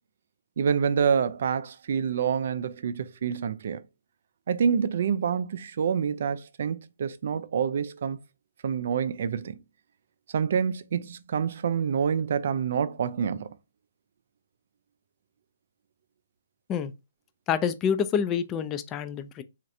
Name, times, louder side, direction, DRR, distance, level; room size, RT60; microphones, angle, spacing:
voice 1, 0.6-3.8 4.5-8.2 8.6-9.6 10.3-13.5, right 7 dB, 55° right, 0.4 m, -27 dB
voice 2, 17.5-19.4, left 7 dB, 20° left, 0.3 m, -27 dB
3.1 x 2.4 x 2.6 m
hypercardioid pair, 145°, 0 cm